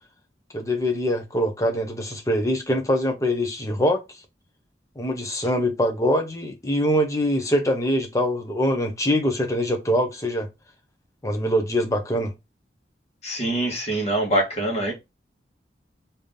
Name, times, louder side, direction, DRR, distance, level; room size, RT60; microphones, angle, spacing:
voice 1, 0.5-4.0 5.0-10.5 11.2-12.3, equal, 15° left, 0.8 m, -23 dB
voice 2, 13.2-14.9, right 1 dB, 35° left, 1.4 m, -24 dB
3.5 x 2.8 x 3.6 m
head